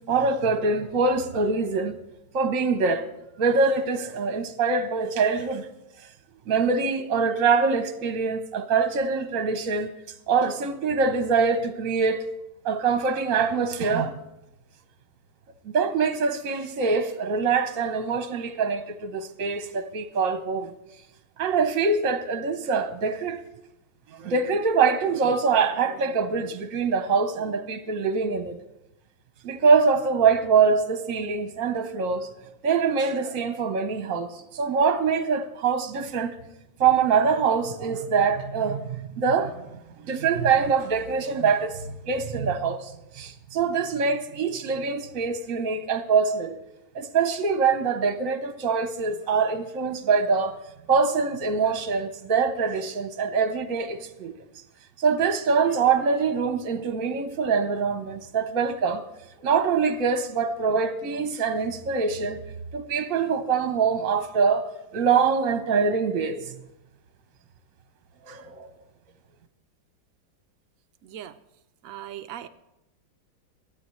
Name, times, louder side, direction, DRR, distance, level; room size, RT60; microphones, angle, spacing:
voice 1, 0.1-2.0 2.3-3.1 3.4-5.7 6.5-9.9 10.3-12.2 12.6-14.1 15.6-20.7 21.4-23.4 24.1-28.6 29.4-32.3 32.6-36.3 36.8-46.6 46.9-50.5 50.9-54.3 55.0-59.0 59.4-62.4 62.7-64.7 64.9-66.5 68.3-68.7, right 5 dB, 55° right, 1.0 m, -24 dB
voice 2, 71.9-72.5, right 11 dB, 85° right, 0.7 m, -38 dB
26.0 x 9.4 x 3.1 m
omnidirectional pair, 2.1 m